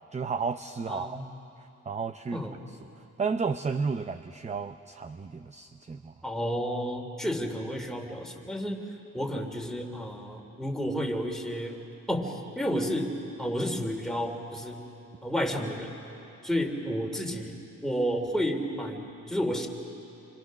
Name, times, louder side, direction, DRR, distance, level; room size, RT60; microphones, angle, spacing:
voice 1, 0.1-1.2 1.9-2.4 3.2-6.1, right 5 dB, 25° right, 9 dB, 0.7 m, -32 dB
voice 2, 0.9-1.3 2.3-2.6 6.2-8.8 9.1-11.8 12.1-13.1 13.4-14.8 15.2-15.9 16.4-17.6 17.8-19.7, equal, ahead, 2 dB, 3.1 m, -31 dB
28.0 x 25.0 x 6.4 m, 2.8 s
cardioid pair, 90°, 30 cm